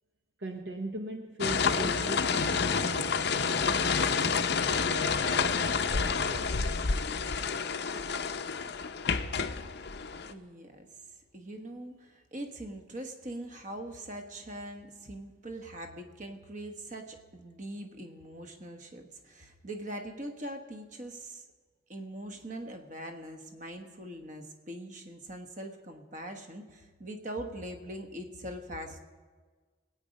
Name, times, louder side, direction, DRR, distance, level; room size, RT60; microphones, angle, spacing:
voice 1, 0.4-7.0, right 1 dB, 60° right, 5 dB, 0.8 m, -40 dB
sound 1, 1.4-10.3, left 5 dB, 55° left, 0.6 m, -29 dB
voice 2, 10.3-10.9 11.3-21.5 21.9-29.0, right 1 dB, 40° right, 5 dB, 1.3 m, -42 dB
20.5 x 9.0 x 5.2 m, 1.4 s
head